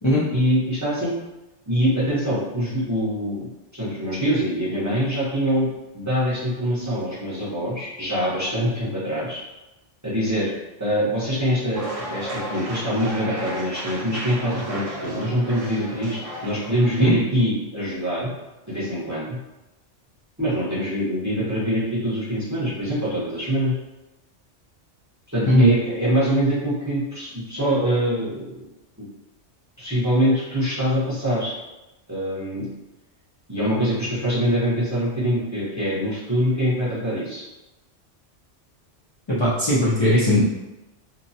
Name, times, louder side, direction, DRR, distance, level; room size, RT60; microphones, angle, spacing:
voice 1, 0.3-1.1 1.7-5.7 5.9-9.4 10.0-10.5 10.8-11.8 12.1-18.3 18.7-19.4 20.4-23.8 25.3-28.5 29.0-29.1 29.8-31.5 32.1-32.7 33.5-37.4, equal, 15° right, -10 dB, 0.8 m, -24 dB
sound 1, 11.7-17.1, right 1 dB, 60° right, 0.3 m, -33 dB
voice 2, 39.3-40.4, left 1 dB, 35° left, -10 dB, 0.5 m, -18 dB
2.8 x 2.2 x 2.7 m, 1.0 s
omnidirectional pair, 1.2 m